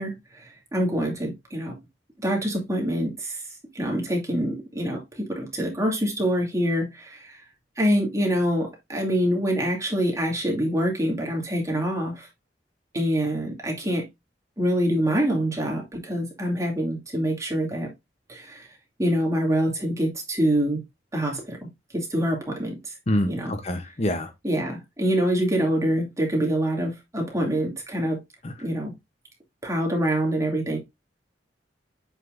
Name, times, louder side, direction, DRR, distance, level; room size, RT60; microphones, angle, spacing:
voice 1, 0.0-1.8 2.2-3.4 3.7-7.4 7.8-12.3 12.9-14.1 14.6-17.9 18.3-18.7 19.0-20.8 21.1-21.7 21.9-22.9 23.3-23.5 24.4-28.2 28.6-28.9 29.6-30.8, equal, 15° right, 2.4 m, -25 dB
voice 2, 23.1-24.3 28.4-28.5, left 1 dB, 35° left, 0.8 m, -26 dB
7.9 x 5.7 x 2.6 m
head